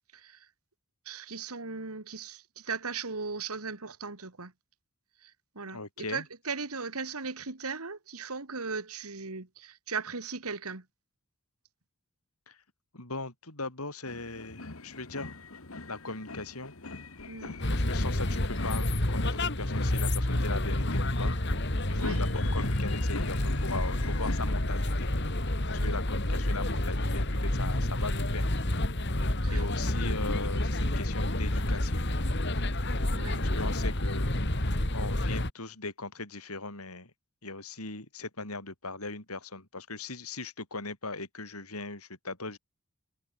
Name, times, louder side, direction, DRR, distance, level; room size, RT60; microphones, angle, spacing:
voice 1, 0.1-0.5 1.1-4.5 5.2-5.8 6.1-10.8 17.3-17.6 21.9-22.2 25.8-26.0 29.4-29.7 33.1-33.4, right 4 dB, 90° right, 2.3 m, -38 dB
voice 2, 5.7-6.2 12.5-12.6 12.9-15.3 15.9-16.7 17.7-21.4 21.9-25.1 25.7-29.1 29.5-32.0 33.4-37.1 37.4-42.6, left 3 dB, 90° left, 8.0 m, -39 dB
sound 1, 14.0-24.5, left 2 dB, 70° left, 1.9 m, -42 dB
sound 2, 17.6-35.5, left 1 dB, 50° left, 2.7 m, -29 dB
head